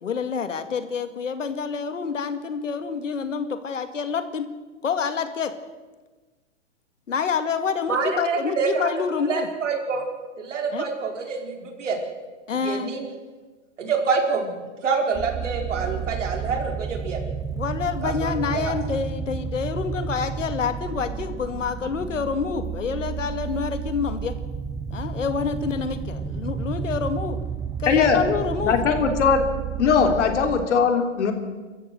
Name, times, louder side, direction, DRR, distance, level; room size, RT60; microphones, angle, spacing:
voice 1, 0.0-4.5 4.8-5.5 7.1-9.5 10.7-10.9 12.5-12.9 17.6-24.4 24.9-27.4 27.8-28.8 30.0-30.2, left 6 dB, 85° left, 9 dB, 2.2 m, -27 dB
voice 2, 7.9-8.9 9.3-10.0 10.4-12.0 12.5-13.1 13.8-14.6 14.8-17.2 18.0-18.7, right 5 dB, 75° right, 2 dB, 4.9 m, -26 dB
sound 1, 15.1-30.7, right 7 dB, 10° right, 0.8 m, -31 dB
voice 3, 27.9-28.2 28.6-29.4 29.8-31.3, left 6 dB, 70° left, 5 dB, 3.6 m, -20 dB
27.0 x 14.5 x 7.9 m, 1.3 s
hypercardioid pair, 130°, 37 cm